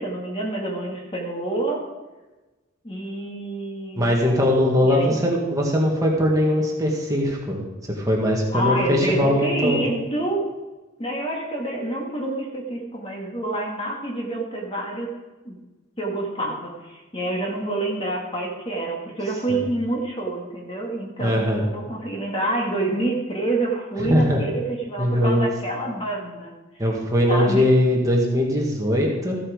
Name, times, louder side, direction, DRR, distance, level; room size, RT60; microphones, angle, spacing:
voice 1, 0.0-1.8 2.8-4.1 4.8-5.2 8.5-10.5 11.0-15.1 15.4-15.6 16.0-26.5 27.3-27.7, right 2 dB, 25° left, 0 dB, 1.8 m, -27 dB
voice 2, 4.0-9.9 19.5-19.6 21.2-21.7 24.0-24.4 25.0-25.5 26.8-29.4, left 1 dB, 15° right, -1 dB, 1.6 m, -21 dB
14.5 x 7.3 x 4.9 m, 1.2 s
head